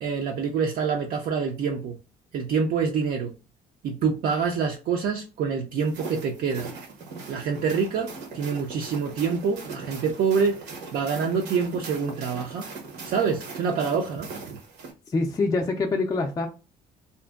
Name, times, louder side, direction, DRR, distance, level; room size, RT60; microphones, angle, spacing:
voice 1, 0.0-2.0 2.3-3.3 3.8-6.7 7.3-10.6 10.9-12.7 13.0-14.6, right 6 dB, 60° right, 0.4 m, -26 dB
sound 1, 5.8-14.9, right 4 dB, 80° right, 0.9 m, -40 dB
voice 2, 15.1-16.5, left 3 dB, 20° left, 0.3 m, -25 dB
2.6 x 2.1 x 2.3 m
cardioid pair, 110°, 17 cm